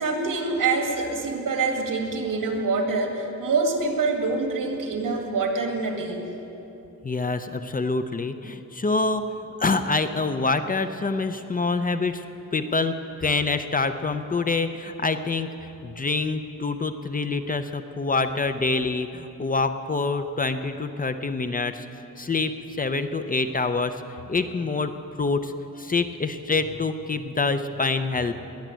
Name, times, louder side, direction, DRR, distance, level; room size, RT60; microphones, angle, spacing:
voice 1, 0.0-6.2, right 3 dB, 80° right, 3 dB, 2.1 m, -25 dB
voice 2, 7.0-9.2 9.6-12.2 12.5-12.9 13.2-15.5 15.8-21.9 22.2-23.9 24.3-24.9 25.2-25.5 25.8-28.3, left 3 dB, 25° left, 9 dB, 0.5 m, -26 dB
21.0 x 7.3 x 9.1 m, 2.9 s
wide cardioid pair, 170°, 32 cm